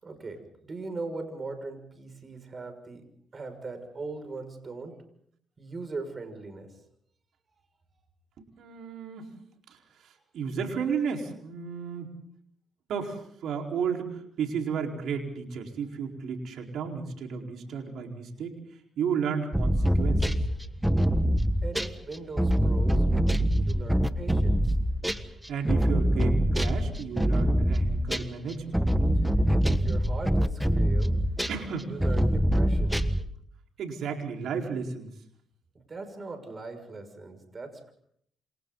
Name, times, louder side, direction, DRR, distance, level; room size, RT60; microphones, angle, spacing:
voice 1, 0.0-3.0 3.3-5.0 5.6-6.7 21.6-23.0 23.5-24.6 29.5-31.2 31.8-33.0 35.9-37.9, right 3 dB, 35° right, 7 dB, 6.4 m, -39 dB
voice 2, 8.4-9.3 9.7-9.8 10.0-12.1 12.9-18.5 19.0-20.2 25.5-28.8 31.5-31.9 33.8-35.1, right 6 dB, 70° right, 2 dB, 4.6 m, -33 dB
sound 1, 19.5-25.3 25.6-28.4 28.7-31.7 32.0-33.2, equal, 5° right, 1.4 m, -24 dB
28.0 x 28.0 x 4.1 m, 0.67 s
cardioid pair, 90°, 0 cm